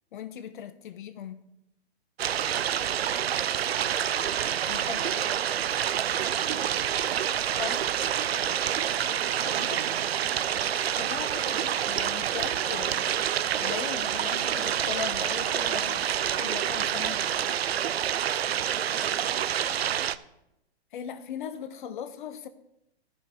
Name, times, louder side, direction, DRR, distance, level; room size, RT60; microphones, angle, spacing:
voice 1, 0.1-1.5 4.7-5.3 7.6-7.9 9.1-9.8 10.9-13.2 13.6-17.2 20.9-22.5, left 8 dB, 50° left, 0.8 m, -39 dB
sound 1, 2.2-20.2, right 10 dB, 70° right, 0.6 m, -28 dB
voice 2, 2.8-3.3 6.1-6.9 8.9-9.7 18.2-19.5, right 7 dB, 25° right, 1.3 m, -47 dB
sound 2, 8.5-17.5, right 4 dB, 45° right, 2.6 m, -50 dB
13.0 x 5.5 x 5.0 m
figure-of-eight pair, 115°, 32 cm